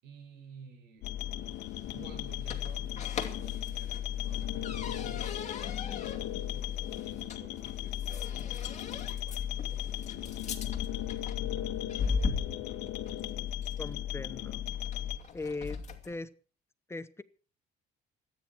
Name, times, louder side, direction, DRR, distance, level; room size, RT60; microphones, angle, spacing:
voice 1, 0.0-1.1 1.9-6.3 7.0-10.5, right 6 dB, 90° right, 6 dB, 6.4 m, -54 dB
sound 1, 1.0-15.2, left 11 dB, 80° left, 1.5 m, -36 dB
sound 2, 1.1-16.2, left 5 dB, 45° left, 2.7 m, -40 dB
voice 2, 13.8-14.6 15.3-15.8 16.0-16.3 16.9-17.2, left 3 dB, 15° left, 14 dB, 0.9 m, -39 dB
26.5 x 9.9 x 4.6 m, 0.38 s
cardioid pair, 110°, 17 cm